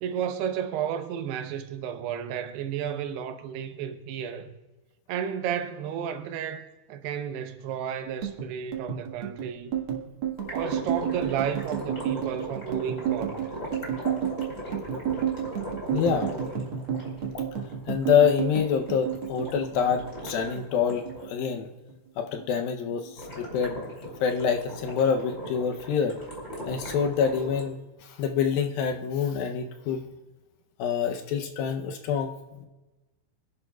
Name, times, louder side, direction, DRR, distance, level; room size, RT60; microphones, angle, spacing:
voice 1, 0.0-4.5 5.1-9.7 10.5-13.5, right 8 dB, 85° right, 2.9 m, -32 dB
sound 1, 8.1-20.6 20.9-21.9 22.2-22.6 22.9-23.6, right 9 dB, 55° right, 1.5 m, -31 dB
sound 2, 10.4-21.3 23.2-27.6, equal, 20° left, 3.3 m, -39 dB
voice 2, 15.9-16.3 17.9-21.7 22.2-26.2 26.7-30.0 30.8-32.7, left 7 dB, 75° left, 2.4 m, -26 dB
26.0 x 11.0 x 2.3 m
omnidirectional pair, 4.6 m